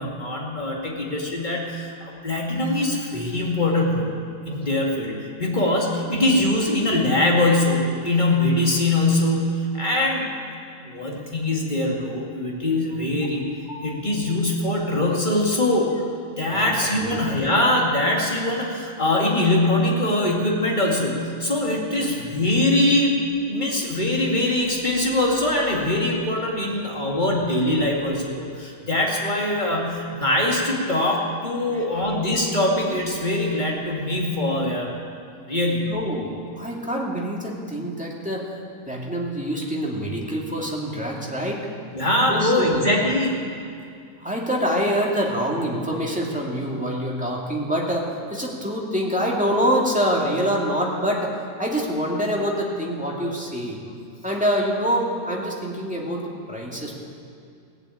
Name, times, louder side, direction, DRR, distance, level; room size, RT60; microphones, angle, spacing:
voice 1, 0.0-4.1 4.5-10.3 10.8-15.9 16.4-34.9 35.5-36.0 41.9-43.5, left 1 dB, 35° left, -2 dB, 2.5 m, -22 dB
voice 2, 35.9-36.3 36.6-38.5 38.9-41.6 42.3-42.8 44.2-51.3 51.6-53.9 54.2-56.9, equal, 5° right, -3 dB, 2.2 m, -25 dB
17.0 x 7.9 x 8.8 m, 2.4 s
omnidirectional pair, 1.4 m